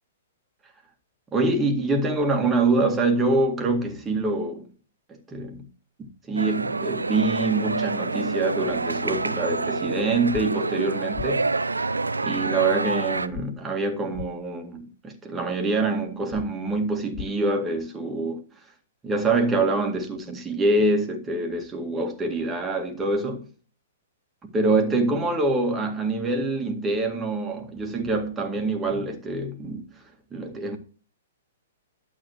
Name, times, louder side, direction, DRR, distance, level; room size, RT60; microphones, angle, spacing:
voice 1, 1.3-4.7 5.1-5.7 6.3-11.5 12.2-18.4 19.0-23.5 24.4-29.9 30.3-30.8, right 2 dB, 15° right, 2.0 m, -25 dB
sound 1, 6.4-13.3, right 3 dB, 85° right, 0.5 m, -27 dB
sound 2, 10.3-10.4 11.1-11.3 13.3-13.5 14.1-14.3 16.3-16.5 17.1-17.3, left 13 dB, 30° left, 0.6 m, -35 dB
11.5 x 8.5 x 3.1 m
figure-of-eight pair, 115°, 0 cm